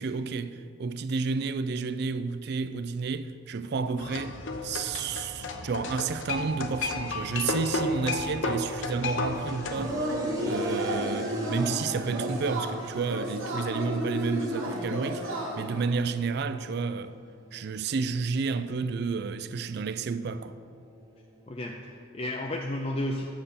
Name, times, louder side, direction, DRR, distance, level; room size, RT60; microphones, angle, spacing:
voice 1, 0.0-17.1 17.5-20.6, right 4 dB, 50° right, 0.3 m, -31 dB
sound 1, 4.0-9.9, left 2 dB, 65° left, 0.7 m, -32 dB
sound 2, 4.6-21.7, equal, 15° right, 1.0 m, -44 dB
Yell / Cheering, 9.7-15.9, right 1 dB, 85° right, 1.6 m, -32 dB
voice 2, 21.5-23.2, left 1 dB, 30° left, 0.5 m, -32 dB
8.7 x 6.7 x 5.6 m
head